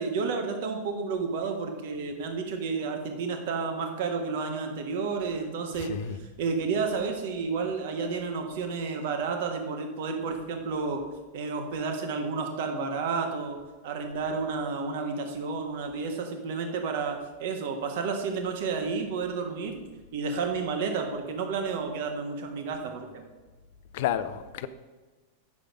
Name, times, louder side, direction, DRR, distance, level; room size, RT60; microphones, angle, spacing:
voice 1, 0.0-5.9 6.4-11.0 11.3-19.8 20.1-23.2, right 4 dB, 50° right, 1.4 m, -31 dB
voice 2, 5.8-6.2 23.9-24.7, left 10 dB, 50° left, 0.5 m, -30 dB
8.6 x 6.5 x 5.1 m
figure-of-eight pair, 90°, 0 cm